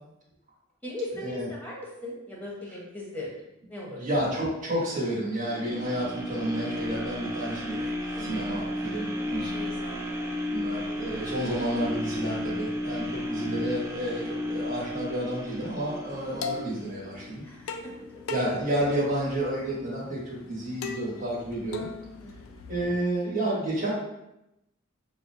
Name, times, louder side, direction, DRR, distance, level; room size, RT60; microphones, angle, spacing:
voice 1, 0.8-3.3 3.7-4.0 8.1-8.6 9.5-10.1 17.4-17.9 22.2-22.5, left 1 dB, 10° left, -4 dB, 0.9 m, -39 dB
voice 2, 3.9-9.5 10.5-17.4 18.3-21.9 22.7-23.9, right 1 dB, 40° right, -7 dB, 1.1 m, -30 dB
sound 1, 5.4-17.5 18.0-18.1, left 1 dB, 10° right, 0.3 m, -33 dB
sound 2, 16.1-22.8, left 5 dB, 75° left, 0.4 m, -40 dB
5.6 x 2.1 x 2.6 m, 0.88 s
head